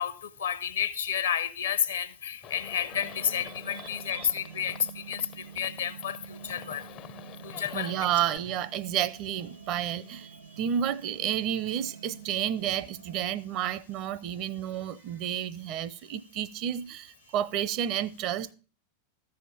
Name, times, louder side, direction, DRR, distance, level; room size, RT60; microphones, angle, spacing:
voice 1, 0.0-6.8 7.4-7.9, left 8 dB, 65° left, 0.8 m, -31 dB
Livestock farm animals working animals, 2.4-8.4, left 11 dB, 40° left, 0.5 m, -47 dB
sound 1, 2.9-13.3, right 7 dB, 75° right, 1.5 m, -48 dB
voice 2, 3.7-4.3 7.7-18.5, right 10 dB, 40° right, 0.6 m, -31 dB
13.5 x 5.7 x 6.7 m
figure-of-eight pair, 90°, 0 cm